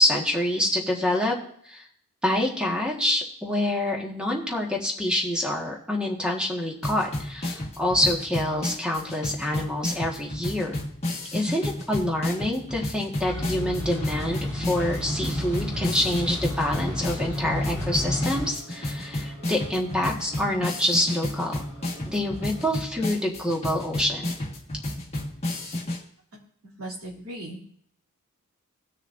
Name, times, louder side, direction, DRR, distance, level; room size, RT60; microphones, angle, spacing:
voice 1, 0.0-1.4 1.6-1.9 2.2-10.8 11.3-21.6 22.0-24.3, left 1 dB, 5° right, -1 dB, 1.6 m, -26 dB
sound 1, 6.8-26.0, left 1 dB, 30° left, 1.6 m, -32 dB
sound 2, 13.2-18.5, left 1 dB, 10° left, 3.0 m, -31 dB
sound 3, 14.7-22.8, right 1 dB, 35° right, 2.8 m, -49 dB
voice 2, 26.8-27.6, right 1 dB, 65° right, -3 dB, 2.9 m, -37 dB
18.5 x 6.4 x 2.6 m, 0.65 s
head